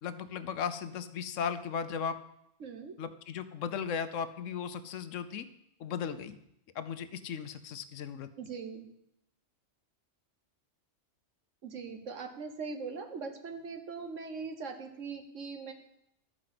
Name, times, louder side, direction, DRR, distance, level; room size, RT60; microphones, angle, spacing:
voice 1, 0.0-2.2 3.0-5.5 5.8-6.4 6.7-8.3, left 7 dB, 80° left, 11 dB, 1.1 m, -36 dB
voice 2, 2.6-3.0 8.4-8.9 11.6-15.7, right 5 dB, 75° right, 5 dB, 1.5 m, -41 dB
12.0 x 5.1 x 7.7 m, 0.79 s
omnidirectional pair, 1.3 m